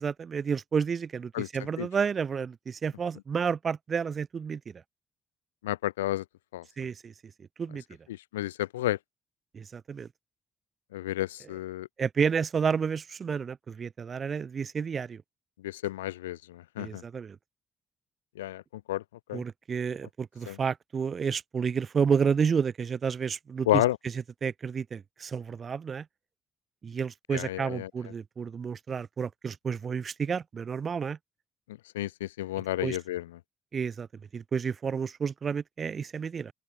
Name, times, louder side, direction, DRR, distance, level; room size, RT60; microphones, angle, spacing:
voice 1, 0.0-4.6 6.8-7.1 7.6-7.8 9.5-10.1 12.0-15.2 16.8-17.4 19.3-23.8 24.1-26.0 26.8-31.2 32.8-33.0 33.7-34.1 34.3-36.5, right 6 dB, 45° right, 6.7 m, -30 dB
voice 2, 5.6-6.2 6.5-6.6 8.3-9.0 10.9-11.9 15.6-17.0 18.4-18.6 18.9-19.0 19.3-19.4 20.5-20.6 23.7-24.0 27.3-27.9 31.9-33.2, left 15 dB, 80° left, 2.6 m, -30 dB
open air
figure-of-eight pair, 45°, 0 cm